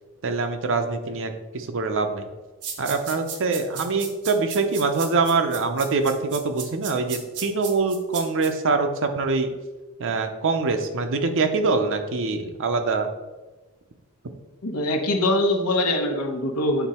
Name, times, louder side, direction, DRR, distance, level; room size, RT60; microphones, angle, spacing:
voice 1, 0.2-2.2 2.8-9.5 10.0-13.1, right 4 dB, 60° right, 7 dB, 0.7 m, -24 dB
sound 1, 2.6-8.5, right 6 dB, 85° right, 1.0 m, -35 dB
voice 2, 14.6-16.9, left 1 dB, 75° left, 3 dB, 1.0 m, -23 dB
8.0 x 3.8 x 4.3 m, 1.2 s
head